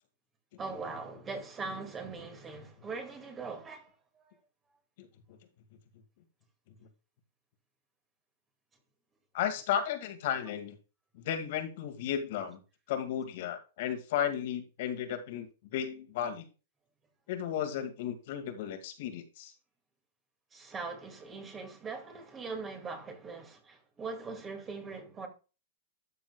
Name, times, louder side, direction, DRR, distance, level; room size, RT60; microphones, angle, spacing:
voice 1, 0.6-3.9 20.5-25.3, right 4 dB, 20° right, 2.1 m, -41 dB
voice 2, 5.0-5.4 9.3-10.8 11.1-12.6 12.9-16.5 17.3-19.5, left 9 dB, 55° left, 1.9 m, -34 dB
13.0 x 6.9 x 2.3 m
hypercardioid pair, 135°, 0 cm